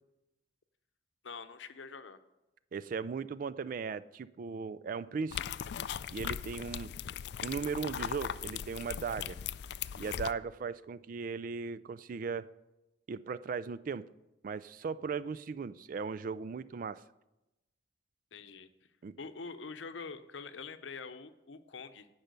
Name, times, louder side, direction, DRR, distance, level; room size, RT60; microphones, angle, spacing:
voice 1, 1.2-2.2 18.3-18.7 19.2-22.1, left 4 dB, 80° left, 10 dB, 0.7 m, -45 dB
voice 2, 2.7-5.4 6.1-6.9 7.4-9.4 10.0-12.5 13.1-14.1 14.4-17.0 19.0-19.2, right 5 dB, 45° right, 16 dB, 0.3 m, -37 dB
sound 1, 5.3-10.3, left 9 dB, 60° left, 0.3 m, -39 dB
10.5 x 5.6 x 8.1 m, 0.97 s
head